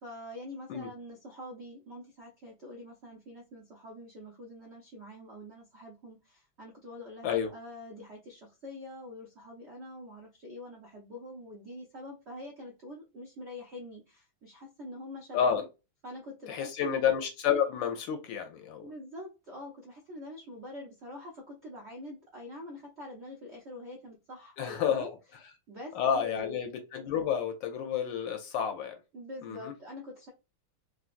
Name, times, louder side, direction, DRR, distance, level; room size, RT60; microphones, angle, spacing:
voice 1, 0.0-15.6 16.0-17.0 18.8-25.1 25.7-26.6 29.1-30.3, left 1 dB, 80° right, 0.6 m, -45 dB
voice 2, 15.3-15.6 16.5-18.9 24.6-25.2 25.9-28.9 29.4-29.7, left 8 dB, 75° left, 1.2 m, -30 dB
3.9 x 2.2 x 2.5 m
omnidirectional pair, 2.3 m